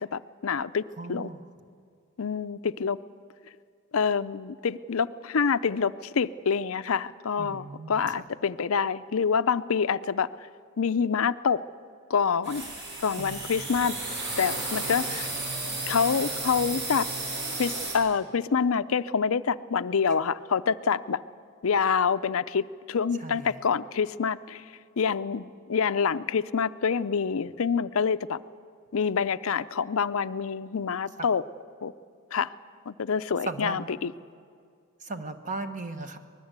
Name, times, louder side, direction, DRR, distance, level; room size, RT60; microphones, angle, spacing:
voice 1, 0.0-0.8 1.1-1.3 2.2-3.0 3.9-10.3 10.8-11.6 12.1-12.7 13.0-13.9 14.4-15.3 15.9-17.1 17.6-21.2 21.6-24.6 25.0-28.4 28.9-31.4 31.8-31.9 32.3-32.5 32.9-34.1, left 6 dB, 65° left, 14 dB, 0.5 m, -26 dB
voice 2, 1.0-1.4 7.4-8.3 13.2-13.7 23.2-23.5 31.2-31.3 33.4-33.8 35.0-36.2, right 2 dB, 35° right, 8 dB, 1.3 m, -37 dB
sound 1, 12.4-17.9, right 2 dB, 50° right, 6.7 m, -33 dB
24.0 x 20.0 x 8.1 m, 2.2 s
head